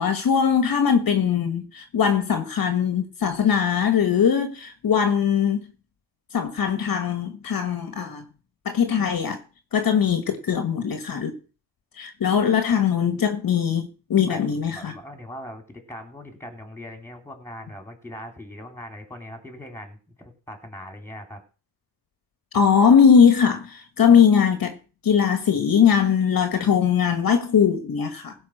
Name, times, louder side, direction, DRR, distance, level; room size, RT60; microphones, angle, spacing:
voice 1, 0.0-5.6 6.3-8.2 8.6-9.4 9.7-11.3 12.0-14.9 22.5-24.8 25.0-28.3, left 7 dB, 50° left, 1.5 m, -20 dB
voice 2, 14.2-21.4, left 1 dB, 5° left, 3.4 m, -40 dB
16.0 x 5.4 x 6.5 m
cardioid pair, 95°, 44 cm